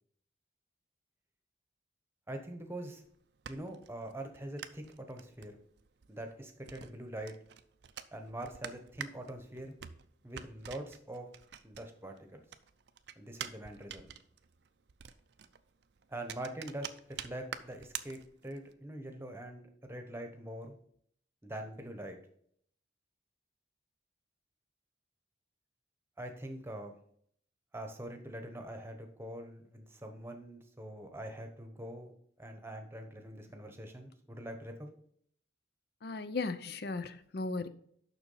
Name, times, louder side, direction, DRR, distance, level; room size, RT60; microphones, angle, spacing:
voice 1, 2.3-3.0 3.5-5.6 6.1-7.3 8.1-9.7 10.2-11.3 11.6-12.4 13.2-14.1 16.1-20.7 21.4-22.2 26.2-27.0 27.7-34.9, right 1 dB, 15° right, 1.0 m, -44 dB
sound 1, 3.0-12.2 12.5-18.7, right 8 dB, 65° right, 0.5 m, -47 dB
voice 2, 36.0-37.7, left 3 dB, 55° left, 0.5 m, -36 dB
6.9 x 5.9 x 5.5 m
head